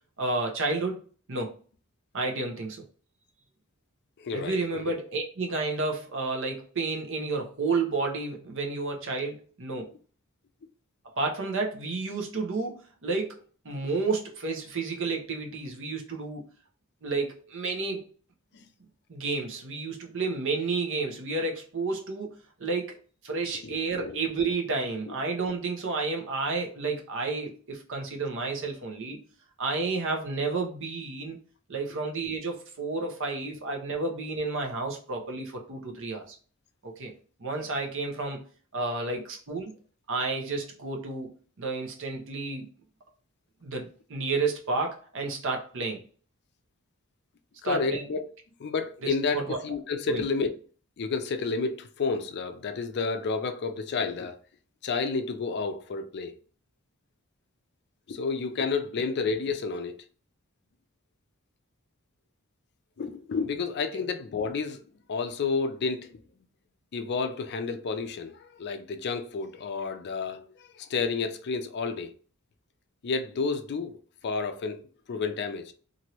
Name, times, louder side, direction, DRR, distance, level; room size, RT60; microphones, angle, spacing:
voice 1, 0.2-1.0 1.3-1.5 2.1-2.8 4.3-9.9 11.0-13.4 13.6-16.4 17.0-18.0 19.1-22.3 22.6-23.0 23.2-29.2 29.6-31.4 31.7-36.4 36.8-37.1 37.4-38.4 38.7-39.7 40.1-41.3 41.6-42.7 43.6-46.0 47.6-48.0 49.0-49.6 50.1-50.2 63.9-64.1, right 3 dB, 60° right, 0.8 m, -31 dB
voice 2, 4.2-4.9 23.6-24.2 39.1-39.2 47.6-48.3 48.6-50.5 51.0-54.4 54.8-56.3 58.1-60.0 63.0-64.8 65.1-66.1 66.9-70.4 70.7-72.1 73.0-74.8 75.1-75.7, left 4 dB, 50° left, 0.4 m, -30 dB
2.9 x 2.6 x 3.0 m
head